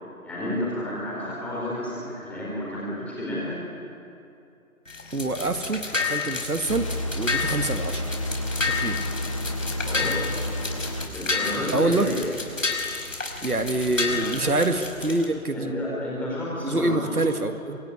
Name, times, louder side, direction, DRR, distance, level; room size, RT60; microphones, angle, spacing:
voice 1, 0.2-3.6 9.8-10.3 11.1-12.2 14.1-14.5 15.5-17.2, left 1 dB, 5° left, -7 dB, 4.6 m, -31 dB
sound 1, 4.9-15.3, left 4 dB, 60° left, 5.1 m, -31 dB
voice 2, 5.1-8.1 8.8-9.0 11.7-12.1 13.4-15.7 16.6-17.8, right 2 dB, 80° right, 8 dB, 2.0 m, -26 dB
sound 2, 6.7-11.1, left 1 dB, 20° left, 1.0 m, -30 dB
26.0 x 22.0 x 9.6 m, 2.6 s
figure-of-eight pair, 155°, 44 cm